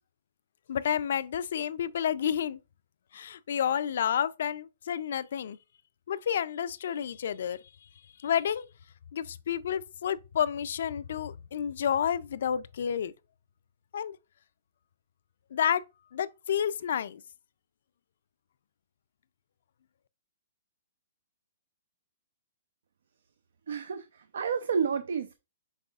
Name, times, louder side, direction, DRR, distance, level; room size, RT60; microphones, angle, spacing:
voice 1, 0.7-2.6 3.1-5.6 6.1-7.6 8.2-8.7 9.1-13.1 13.9-14.2 15.5-15.8 16.1-17.2, left 9 dB, 65° left, 0.3 m, -30 dB
voice 2, 23.7-25.3, right 6 dB, 75° right, 0.4 m, -30 dB
5.3 x 3.4 x 2.3 m
hypercardioid pair, 155°, 0 cm